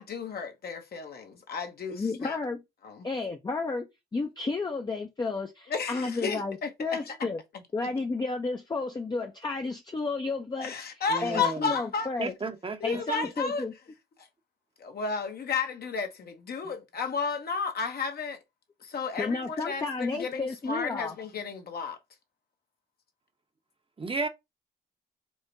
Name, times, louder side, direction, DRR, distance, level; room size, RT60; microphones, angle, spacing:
voice 1, 0.0-2.4 2.8-3.1 5.7-7.3 10.6-12.1 12.8-13.7 14.8-18.4 18.8-22.0, left 5 dB, 55° left, 0.9 m, -33 dB
voice 2, 1.9-2.6 3.0-3.9 4.1-7.4 7.7-10.7 11.2-12.3 12.8-13.7 19.2-21.2, left 3 dB, 20° left, 0.6 m, -32 dB
voice 3, 11.1-11.8 12.2-13.0 24.0-24.3, right 3 dB, 25° right, 0.8 m, -33 dB
4.6 x 2.1 x 2.6 m
supercardioid pair, 55°, 20 cm